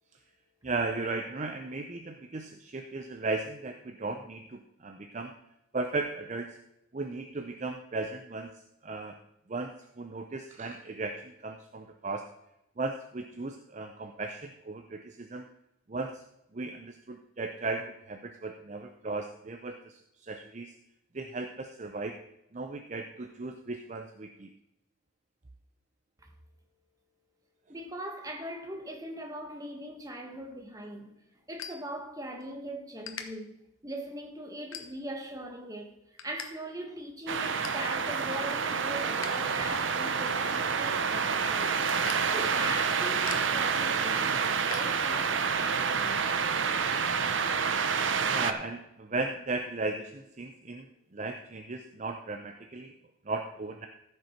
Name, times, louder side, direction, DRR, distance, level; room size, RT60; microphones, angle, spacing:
voice 1, 0.6-5.3 5.7-6.6 6.9-9.2 9.5-12.3 12.8-15.5 15.9-16.2 16.5-20.7 21.1-22.2 22.5-24.5 48.3-52.9 53.3-53.9, right 3 dB, 35° right, 0.6 m, -36 dB
voice 2, 27.7-31.1 31.5-35.9 36.2-41.7 42.3-46.3, right 1 dB, 15° right, 1.3 m, -40 dB
sound 1, 30.4-32.5 32.8-33.2 33.8-34.0 34.6-35.3 35.7-36.5 36.8-36.9 37.2-37.9 38.3-39.3 39.7-45.4, left 7 dB, 80° left, 1.1 m, -45 dB
sound 2, 37.3-48.5, right 6 dB, 65° right, 0.8 m, -28 dB
14.5 x 6.7 x 4.5 m
head